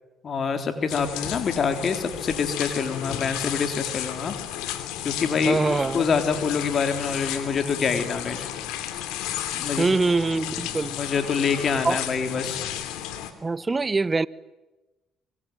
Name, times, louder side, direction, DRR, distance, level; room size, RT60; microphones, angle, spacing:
voice 1, 0.2-4.4 5.0-8.5 9.5-9.9 10.9-12.6, left 6 dB, 50° left, 3.8 m, -26 dB
sound 1, 0.9-13.3, left 11 dB, 80° left, 2.8 m, -33 dB
voice 2, 5.5-6.1 9.8-10.9 11.8-12.0 13.4-14.3, right 3 dB, 25° right, 1.0 m, -23 dB
25.0 x 25.0 x 9.3 m
hypercardioid pair, 55°, 0 cm